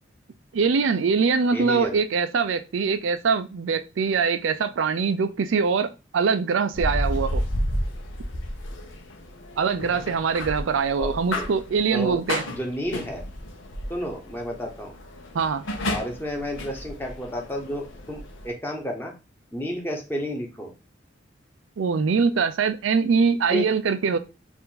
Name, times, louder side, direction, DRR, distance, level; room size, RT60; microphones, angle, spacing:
voice 1, 0.5-7.4 9.6-12.4 15.3-15.6 21.8-24.2, right 5 dB, 85° right, 0.4 m, -23 dB
voice 2, 1.5-2.0 11.0-11.5 11.9-12.2 12.5-13.2 13.9-14.9 15.9-19.1 19.5-20.7 23.5-23.7, equal, 10° left, 1.0 m, -31 dB
sound 1, 6.7-18.5, left 1 dB, 85° left, 0.8 m, -32 dB
4.4 x 2.6 x 3.8 m
head